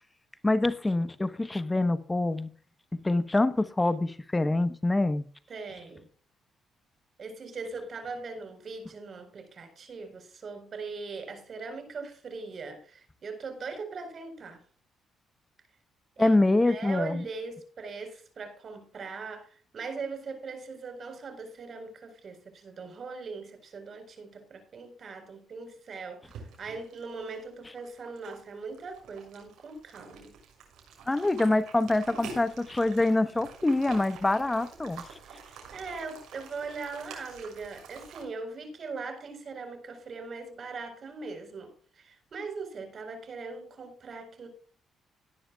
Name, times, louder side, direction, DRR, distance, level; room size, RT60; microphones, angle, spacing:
voice 1, 0.4-2.5 3.0-5.2 16.2-17.2 31.1-35.0, left 2 dB, 15° left, 1.0 m, -25 dB
voice 2, 5.5-6.1 7.2-14.6 16.2-16.4 16.6-30.3 35.2-44.5, right 4 dB, 50° right, 4.4 m, -40 dB
sound 1, 26.2-38.2, right 5 dB, 80° right, 6.1 m, -47 dB
17.5 x 11.0 x 2.3 m
cardioid pair, 90°, 0 cm